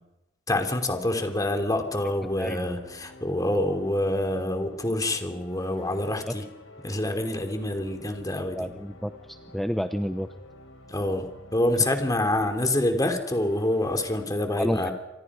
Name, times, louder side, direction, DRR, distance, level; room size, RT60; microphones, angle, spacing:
voice 1, 0.5-6.4 6.8-8.7 10.9-14.9, left 1 dB, 20° left, 6 dB, 3.0 m, -26 dB
sound 1, 0.8-14.3, left 1 dB, 90° left, 4.5 m, -49 dB
voice 2, 8.6-9.1 9.5-10.3 14.6-14.9, equal, ahead, 7 dB, 0.8 m, -29 dB
28.5 x 26.0 x 5.0 m, 0.97 s
head